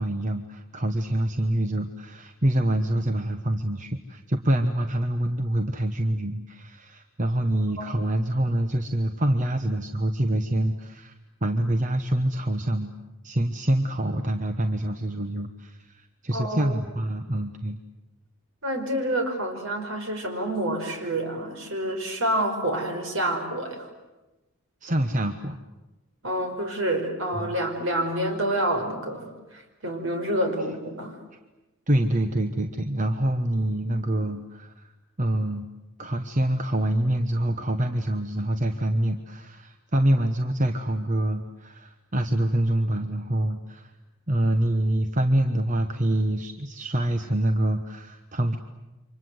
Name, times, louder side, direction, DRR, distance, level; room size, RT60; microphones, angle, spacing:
voice 1, 0.0-11.1 11.4-12.9 13.2-17.8 24.8-25.6 27.3-27.5 31.9-34.9 35.2-35.6 36.0-43.9 44.3-48.6, right 1 dB, 35° right, 7 dB, 1.1 m, -26 dB
voice 2, 16.3-16.7 18.6-23.9 26.2-31.2, right 1 dB, 65° right, 4 dB, 5.2 m, -28 dB
28.5 x 25.5 x 7.9 m, 1.0 s
head